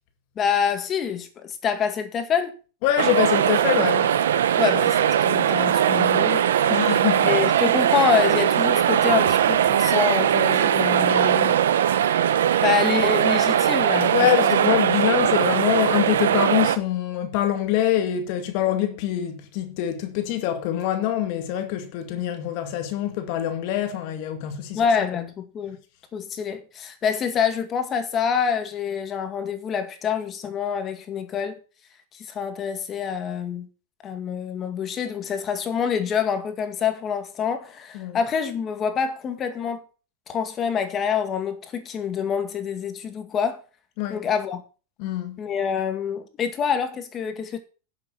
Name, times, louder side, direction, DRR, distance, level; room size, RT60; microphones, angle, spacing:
voice 1, 0.4-2.6 4.6-6.5 7.3-11.6 12.6-14.3 24.7-25.8 26.1-31.6 32.1-33.7 34.0-39.8 40.3-43.6 44.1-44.6 45.4-47.6, left 7 dB, 30° left, 2.1 m, -26 dB
voice 2, 2.8-4.2 6.7-7.4 14.1-25.1 37.9-38.2 44.0-44.3 45.0-45.4, left 12 dB, 55° left, 2.0 m, -25 dB
sound 1, 3.0-16.8, right 10 dB, 85° right, 1.0 m, -20 dB
11.0 x 7.1 x 6.2 m
hypercardioid pair, 130°, 0 cm